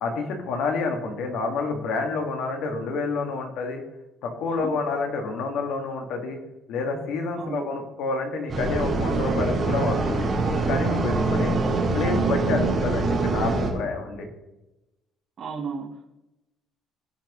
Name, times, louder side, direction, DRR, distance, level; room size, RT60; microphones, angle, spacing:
voice 1, 0.0-3.8 4.2-6.4 6.7-11.5 11.9-14.3, left 4 dB, 65° left, 3 dB, 1.8 m, -28 dB
voice 2, 7.4-7.7 15.4-16.0, right 5 dB, 40° right, -3 dB, 1.1 m, -34 dB
sound 1, 8.5-13.7, right 3 dB, 20° right, 3.4 m, -24 dB
17.0 x 6.0 x 3.1 m, 0.95 s
cardioid pair, 170°, 0 cm